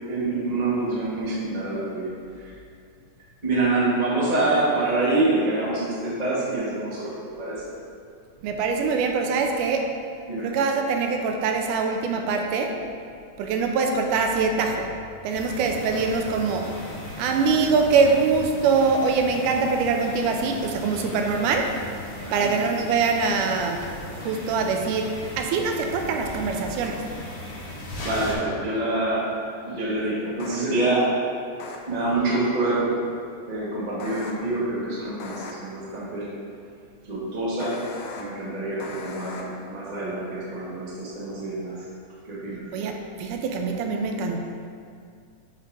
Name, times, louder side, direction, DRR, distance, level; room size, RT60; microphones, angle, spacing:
voice 1, 0.1-2.1 2.4-2.5 3.4-7.6 10.3-10.5 22.2-22.5 28.0-29.3 29.6-31.1 31.9-33.0 33.5-36.3 37.1-37.7 38.2-41.8 42.3-42.6, right 2 dB, 70° right, -8 dB, 0.4 m, -26 dB
voice 2, 8.4-9.9 10.4-12.8 13.4-14.9 15.2-16.7 17.2-21.7 22.3-23.8 24.1-27.0 42.7-44.4, right 4 dB, 85° right, 3 dB, 2.1 m, -23 dB
sound 1, 15.3-28.3, left 1 dB, 55° left, 1.8 m, -38 dB
sound 2, 26.8-26.9 28.0-28.1 30.4-30.6 31.6-31.8 34.0-34.3 35.2-35.5 37.6-38.2 38.8-39.4, left 4 dB, 85° left, 1.4 m, -37 dB
8.2 x 3.5 x 3.9 m, 2.3 s
omnidirectional pair, 3.6 m